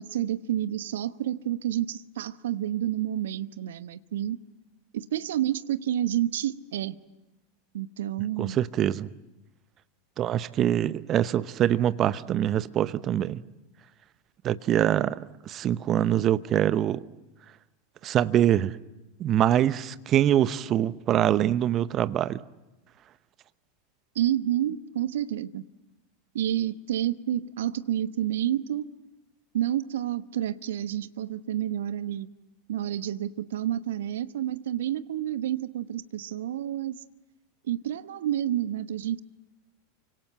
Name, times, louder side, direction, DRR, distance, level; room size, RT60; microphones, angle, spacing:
voice 1, 0.0-4.4 4.9-7.0 7.7-8.6 24.1-25.6 26.3-28.9 29.5-32.3 32.7-37.0 37.7-39.2, right 11 dB, 65° right, 1.0 m, -29 dB
voice 2, 8.4-9.1 10.2-13.4 14.4-17.0 18.0-18.7 19.2-22.4, right 11 dB, 35° right, 0.9 m, -24 dB
29.0 x 25.5 x 8.1 m
figure-of-eight pair, 85°, 0 cm